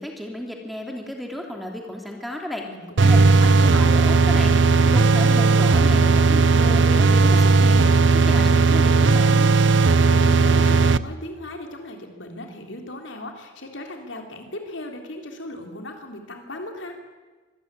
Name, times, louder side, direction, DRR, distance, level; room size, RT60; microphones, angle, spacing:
voice 1, 0.0-2.7 3.0-7.8 8.3-9.5, left 1 dB, ahead, 2 dB, 3.0 m, -33 dB
voice 2, 2.7-3.5 9.8-17.0, left 1 dB, 80° left, 3 dB, 3.7 m, -37 dB
sound 1, 3.0-11.0, right 4 dB, 75° right, 0.7 m, -16 dB
24.5 x 14.0 x 9.9 m, 1.3 s
head